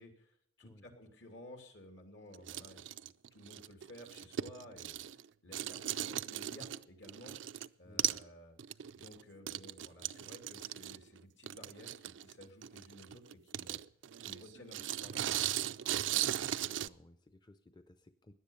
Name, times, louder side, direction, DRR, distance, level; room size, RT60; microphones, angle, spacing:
voice 1, 0.0-5.0 5.4-7.4 7.8-8.6 8.9-13.8 14.2-15.4, left 1 dB, 70° left, 4 dB, 3.0 m, -55 dB
sound 1, 2.3-5.2 5.5-7.7 8.0-8.3 8.6-16.9, right 11 dB, 85° right, 0.4 m, -38 dB
voice 2, 7.8-8.2 16.0-16.3 16.6-18.3, left 1 dB, 25° left, 9 dB, 0.6 m, -59 dB
17.5 x 10.5 x 5.1 m, 0.67 s
head